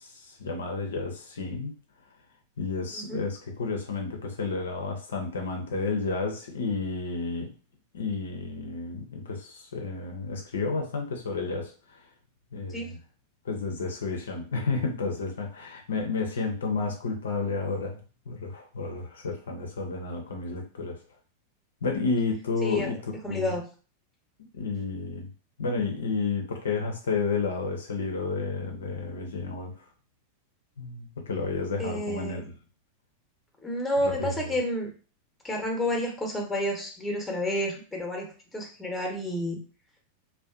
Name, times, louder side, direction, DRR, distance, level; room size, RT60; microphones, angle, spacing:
voice 1, 0.0-1.7 2.6-7.5 7.9-11.7 12.5-13.0 13.4-18.0 18.3-21.0 21.8-23.5 24.6-25.3 25.6-29.7 30.8-32.4 34.0-34.6, left 4 dB, 65° left, 3 dB, 0.4 m, -31 dB
voice 2, 23.2-23.6 31.8-32.4 33.6-34.9 35.4-39.6, left 1 dB, 5° left, 1 dB, 0.8 m, -30 dB
2.5 x 2.1 x 2.4 m, 0.36 s
figure-of-eight pair, 90°, 0 cm